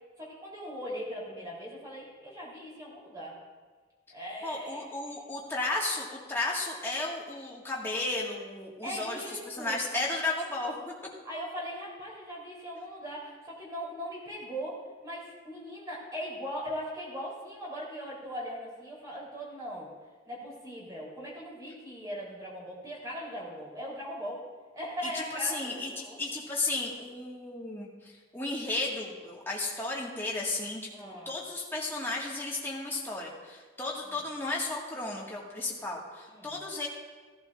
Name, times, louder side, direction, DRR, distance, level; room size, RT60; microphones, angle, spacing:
voice 1, 0.2-3.4 4.1-4.9 8.8-9.7 11.2-19.9 20.2-24.5 24.7-26.2 30.9-31.4 34.1-34.2 36.3-36.6, equal, 20° right, -5 dB, 3.4 m, -39 dB
voice 2, 4.4-10.9 25.1-25.9 26.2-36.9, left 2 dB, 10° left, -4 dB, 1.7 m, -34 dB
16.5 x 11.5 x 2.5 m, 1.4 s
head